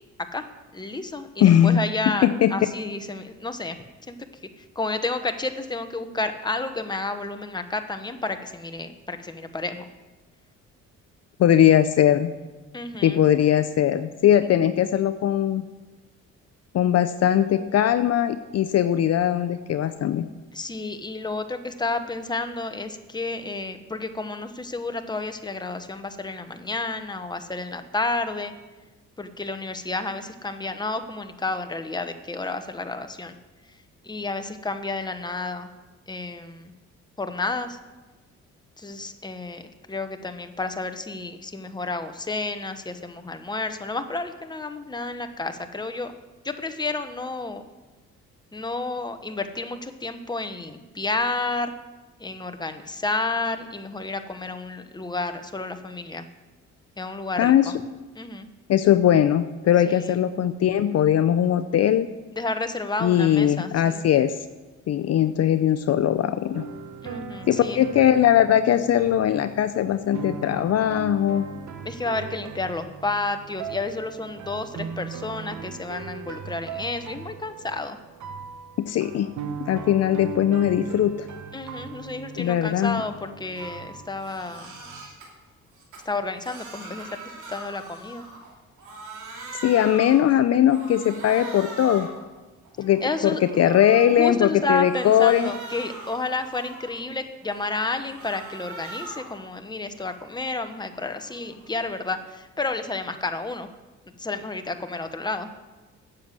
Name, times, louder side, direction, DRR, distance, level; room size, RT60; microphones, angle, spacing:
voice 1, 0.7-3.8 4.1-4.2 4.6-9.8 12.7-13.2 20.5-28.5 29.2-33.3 34.0-35.7 36.1-36.7 37.2-37.8 38.8-46.1 46.4-47.6 48.5-51.7 52.2-56.3 57.0-57.7 58.1-58.5 59.9-60.2 62.3-64.0 67.0-67.8 71.8-78.0 81.5-84.7 86.0-88.2 93.0-93.7 94.0-103.7 104.2-105.5, left 3 dB, 15° left, 8 dB, 1.0 m, -31 dB
voice 2, 1.4-1.8 2.2-2.5 11.4-12.3 13.0-15.6 16.7-20.2 57.4-57.7 58.7-62.1 63.0-64.3 64.9-66.6 67.5-71.5 78.8-79.3 79.6-81.3 82.4-83.0 89.6-92.1 92.8-95.5, left 10 dB, 55° left, 11 dB, 0.6 m, -20 dB
sound 1, 66.5-85.1, right 6 dB, 70° right, 1.2 m, -39 dB
Crying sobbing, 83.6-83.8 84.1-85.3 85.7-88.5 88.8-90.3 90.7-92.2 92.6-94.3 94.7-97.0 97.4-99.4 99.7-102.1, right 2 dB, 90° right, 2.7 m, -42 dB
9.8 x 7.5 x 7.7 m, 1.2 s
cardioid pair, 90°, 30 cm